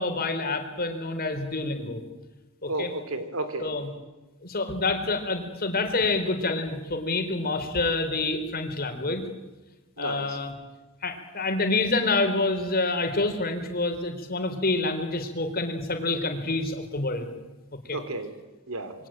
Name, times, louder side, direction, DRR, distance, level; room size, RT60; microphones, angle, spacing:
voice 1, 0.0-2.0 2.6-2.9 3.6-3.9 4.4-9.2 10.0-10.5 11.0-17.3 17.9-18.0, left 3 dB, 45° left, 6 dB, 4.3 m, -27 dB
voice 2, 2.7-3.7 10.0-10.4 17.9-18.3 18.7-18.9, right 2 dB, 70° right, 10 dB, 3.2 m, -32 dB
27.0 x 23.0 x 9.0 m, 1.1 s
head